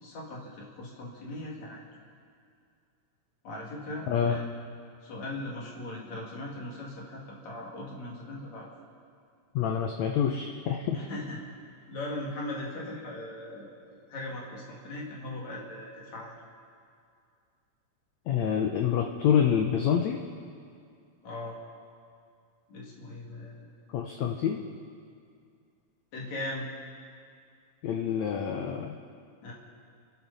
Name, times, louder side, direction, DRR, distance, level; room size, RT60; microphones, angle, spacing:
voice 1, 0.0-1.8 3.4-4.5 5.0-8.7 10.9-11.4 11.9-16.3 21.2-21.6 22.7-23.7 26.1-26.7 29.4-29.5, left 1 dB, 55° left, -3 dB, 3.4 m, -39 dB
voice 2, 4.1-4.4 9.5-11.0 18.3-20.2 23.9-24.6 27.8-29.0, left 8 dB, 75° left, 3 dB, 1.6 m, -27 dB
27.5 x 11.5 x 4.1 m, 2.3 s
omnidirectional pair, 4.0 m